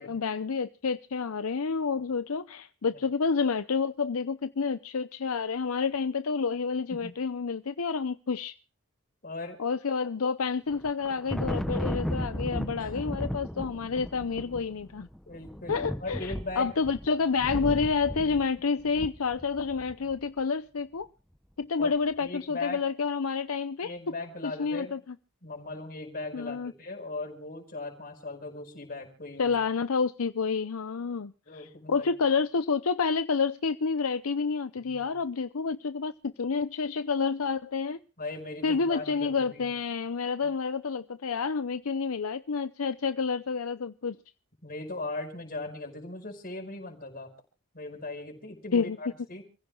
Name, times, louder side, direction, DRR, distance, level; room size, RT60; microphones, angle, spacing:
voice 1, 0.0-8.6 9.6-15.1 15.7-21.1 21.6-23.9 24.4-25.0 26.3-26.7 29.4-38.0 38.6-44.2 48.7-49.0, left 5 dB, 75° left, 0.6 m, -29 dB
voice 2, 9.2-9.6 12.8-13.3 15.3-16.7 21.8-22.9 23.8-25.0 25.4-29.5 31.5-32.1 34.9-35.1 38.2-39.7 44.6-47.3 47.7-49.4, left 2 dB, 45° left, 5.3 m, -39 dB
Thunder, 10.7-20.1, equal, ahead, 0.7 m, -35 dB
29.0 x 16.0 x 2.4 m
head